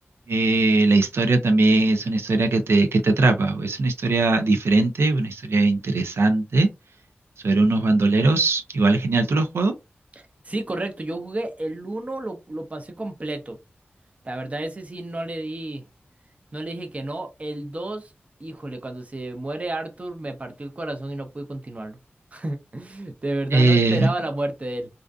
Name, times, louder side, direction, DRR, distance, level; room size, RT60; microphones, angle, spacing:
voice 1, 0.3-6.7 7.4-9.7 23.5-24.1, right 2 dB, 90° right, 0.4 m, -20 dB
voice 2, 10.2-13.6 14.2-15.8 16.5-18.1 18.4-22.0 22.3-24.9, right 2 dB, 35° right, 0.6 m, -31 dB
2.5 x 2.4 x 2.2 m
wide cardioid pair, 90°, 4 cm